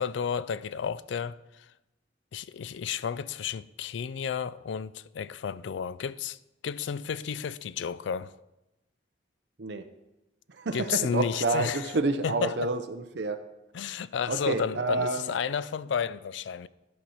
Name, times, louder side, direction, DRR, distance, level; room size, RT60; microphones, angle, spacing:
voice 1, 0.0-1.4 2.3-6.4 6.6-8.3 10.7-11.9 12.2-12.7 13.7-16.7, left 7 dB, 90° left, 0.4 m, -32 dB
voice 2, 10.5-13.4 14.3-15.3, right 3 dB, 70° right, 0.6 m, -29 dB
12.0 x 4.3 x 6.2 m
head